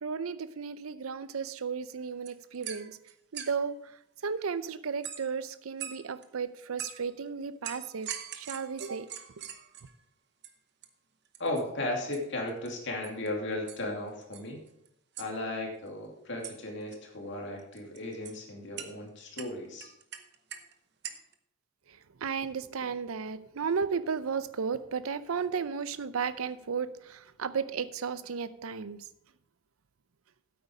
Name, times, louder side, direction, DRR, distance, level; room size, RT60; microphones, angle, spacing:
voice 1, 0.0-3.0 3.3-3.9 4.2-9.1 22.2-29.1, right 6 dB, 85° right, 15 dB, 0.6 m, -34 dB
sound 1, 2.0-2.1 2.3-3.7 5.0-5.4 5.8-6.2 6.8-7.1 7.6-10.0 10.4-10.5 10.8-10.9 11.2-11.6 12.1-12.2 12.5-12.7 13.0-13.3 13.7-13.9 14.2-14.9 15.1-15.3 16.4-16.6 16.8-17.0 17.6-18.4 18.8-18.9 19.4-20.7 21.0-21.3, right 9 dB, 50° right, 0.9 m, -42 dB
voice 2, 11.4-14.6 15.2-19.9, left 1 dB, 60° left, 0 dB, 2.6 m, -35 dB
9.3 x 8.3 x 4.9 m, 0.77 s
head